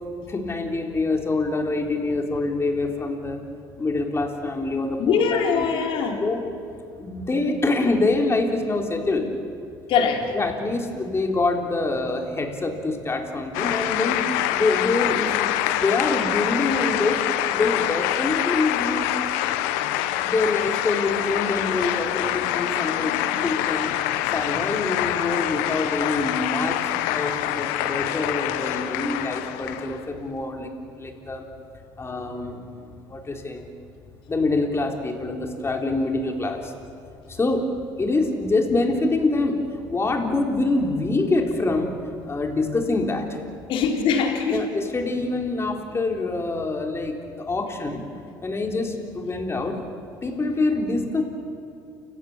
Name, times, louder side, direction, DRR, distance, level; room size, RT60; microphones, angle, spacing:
voice 1, 0.3-3.4 3.8-5.7 5.9-6.4 7.0-9.3 10.3-14.2 14.5-17.2 17.5-19.1 20.2-23.9 24.3-26.8 27.0-31.4 32.0-32.6 33.1-33.7 34.3-36.7 37.3-37.7 38.0-39.6 39.9-41.9 42.2-43.4 44.5-48.0 48.4-49.8 50.2-51.2, left 3 dB, 25° left, 2 dB, 3.8 m, -25 dB
voice 2, 5.0-6.2 9.9-10.3 43.7-44.6, left 6 dB, 65° left, 2 dB, 3.6 m, -22 dB
sound 1, 13.5-30.1, left 13 dB, 80° left, 1.0 m, -25 dB
29.5 x 16.0 x 7.4 m, 2.4 s
supercardioid pair, 75°, 10 cm